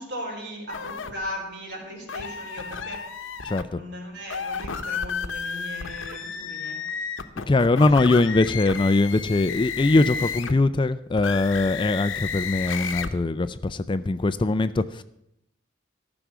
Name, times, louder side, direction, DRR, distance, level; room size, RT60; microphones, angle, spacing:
voice 1, 0.0-3.1 3.7-6.8, equal, 60° right, 0 dB, 4.1 m, -37 dB
sound 1, 0.7-1.1 2.1-3.6 4.2-10.6 11.1-13.1, left 6 dB, 85° left, 0.9 m, -32 dB
voice 2, 3.4-3.8 7.5-15.0, left 2 dB, 25° left, 13 dB, 0.4 m, -22 dB
14.0 x 6.2 x 8.0 m, 0.79 s
head